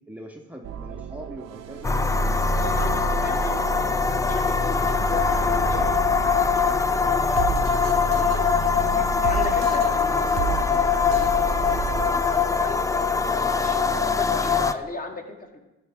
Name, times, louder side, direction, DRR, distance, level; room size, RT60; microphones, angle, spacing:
voice 1, 0.1-2.0 2.4-3.8 7.2-8.7 9.0-11.3 12.0-12.6 12.9-13.7, right 1 dB, 5° right, 1 dB, 0.7 m, -42 dB
sound 1, 0.6-6.9 7.4-12.1, right 8 dB, 60° right, 0.5 m, -33 dB
sound 2, 1.8-14.7, left 5 dB, 10° left, 0.3 m, -22 dB
voice 2, 2.6-3.6 4.0-6.5 8.9-9.9 12.3-12.8 13.2-15.6, left 2 dB, 30° left, 3 dB, 1.1 m, -36 dB
13.5 x 4.7 x 3.5 m, 0.99 s
cardioid pair, 90°, 30 cm